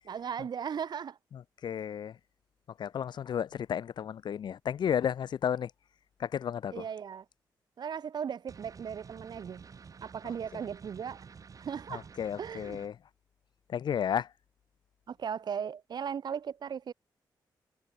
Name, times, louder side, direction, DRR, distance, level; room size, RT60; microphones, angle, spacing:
voice 1, 0.0-1.2 6.7-7.2 7.8-9.7 10.0-11.2 11.6-12.1 12.4-12.8 15.1-16.9, right 7 dB, 65° right, 5.2 m, -37 dB
voice 2, 1.3-2.2 2.8-5.7 6.2-6.8 11.9-13.0 13.7-14.3, left 8 dB, 70° left, 1.1 m, -33 dB
sound 1, 8.5-12.9, right 6 dB, 45° right, 2.6 m, -50 dB
wide cardioid pair, 120°, 8 cm